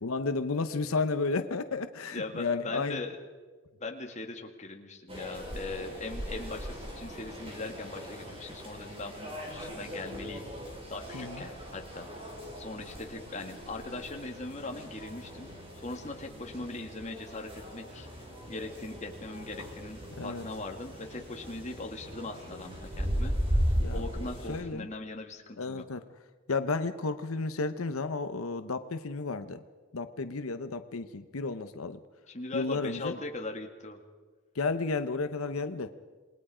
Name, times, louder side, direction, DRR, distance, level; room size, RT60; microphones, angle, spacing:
voice 1, 0.0-3.0 11.1-11.4 20.2-20.4 23.8-24.0 24.5-24.9 25.6-26.0 26.5-29.6 29.9-32.0 32.5-33.2 34.5-35.9, left 3 dB, 85° left, 10 dB, 0.9 m, -32 dB
voice 2, 2.1-3.2 3.8-10.4 10.9-15.5 15.7-18.1 18.5-23.3 23.9-25.8 32.3-34.0, left 2 dB, 35° left, 3 dB, 2.1 m, -40 dB
sound 1, 5.1-24.6, equal, 25° right, 4.6 m, -37 dB
28.0 x 20.5 x 5.0 m, 1.4 s
head